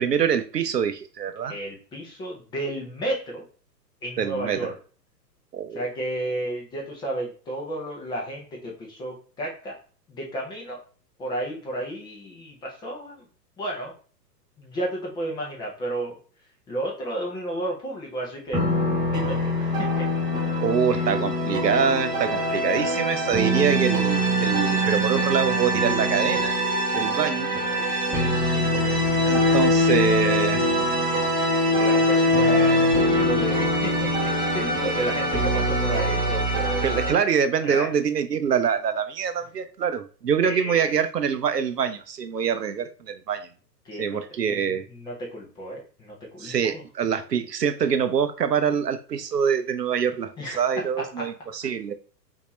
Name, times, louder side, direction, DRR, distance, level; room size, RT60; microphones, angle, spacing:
voice 1, 0.0-1.6 4.2-4.7 5.5-5.8 20.6-26.6 26.9-27.5 29.2-30.7 36.8-43.5 44.0-44.9 46.4-51.9, right 7 dB, 70° right, 0.7 m, -25 dB
voice 2, 1.4-3.4 4.0-4.7 5.7-9.8 10.1-10.8 11.2-13.3 13.6-13.9 14.6-16.2 16.7-18.7 19.1-20.1 20.9-21.0 27.8-29.3 31.7-34.1 34.5-37.1 37.6-37.9 40.4-41.0 43.8-44.2 44.5-46.8 50.4-50.6 51.0-51.3, right 1 dB, 10° left, 0.7 m, -32 dB
sound 1, 18.5-37.1, equal, 10° right, 1.2 m, -23 dB
5.3 x 2.8 x 3.1 m
figure-of-eight pair, 110°, 50 cm